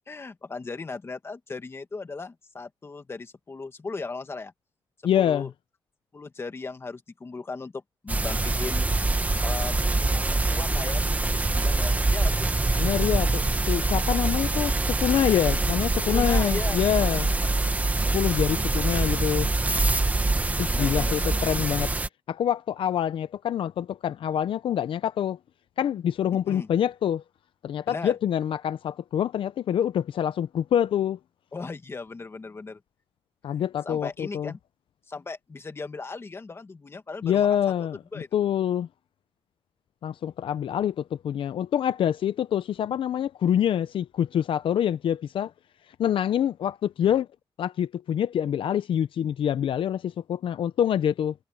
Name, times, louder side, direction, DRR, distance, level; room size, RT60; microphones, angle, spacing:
voice 1, 0.1-4.5 5.2-5.5 6.1-8.9 9.4-9.7 10.0-12.8 16.1-17.5 20.7-21.4 26.5-26.7 27.9-28.2 31.5-32.8 33.5-34.6 35.1-37.6 38.1-38.3, left 4 dB, 30° left, 1.9 m, -37 dB
voice 2, 5.0-5.5 12.8-17.3 18.1-19.5 20.6-21.9 22.3-25.4 25.8-27.2 27.6-31.2 33.4-34.5 37.2-38.0 38.3-38.9 40.0-45.5 46.0-47.3 47.6-51.3, left 10 dB, 75° left, 0.5 m, -26 dB
sound 1, 8.1-22.1, right 2 dB, 15° right, 1.3 m, -24 dB
wide cardioid pair, 150°, 9 cm